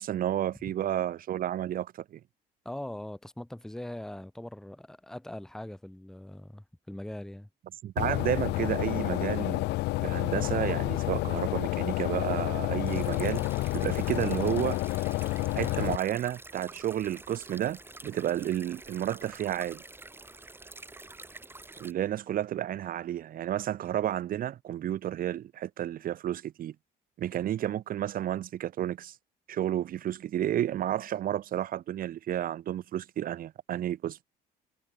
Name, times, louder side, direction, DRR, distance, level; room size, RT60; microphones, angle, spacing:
voice 1, 0.0-2.2 7.8-9.6 10.0-13.5 13.7-14.8 15.5-19.8 21.8-26.7 27.2-29.1 29.5-34.2, right 11 dB, 55° right, 1.4 m, -31 dB
voice 2, 2.6-7.5, left 1 dB, 5° left, 1.0 m, -41 dB
sound 1, 8.0-16.0, left 20 dB, 90° left, 1.2 m, -29 dB
sound 2, 12.8-21.9, right 2 dB, 15° right, 4.9 m, -48 dB
cardioid pair, 110°, 17 cm